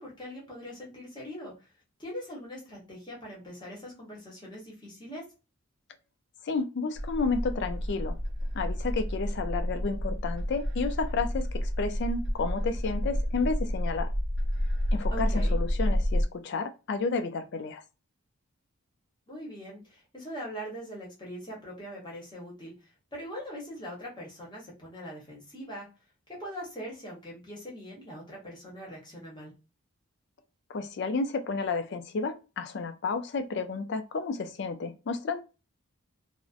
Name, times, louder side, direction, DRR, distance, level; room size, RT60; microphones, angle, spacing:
voice 1, 0.0-1.7 2.0-5.2 15.1-15.6 19.3-25.9 26.4-29.5, equal, 20° left, 0.9 m, -42 dB
voice 2, 6.4-8.2 8.5-14.1 14.9-17.8 30.7-35.4, left 4 dB, 50° left, 0.3 m, -31 dB
sound 1, 6.9-16.2, equal, 50° right, 0.4 m, -30 dB
2.4 x 2.1 x 2.4 m
head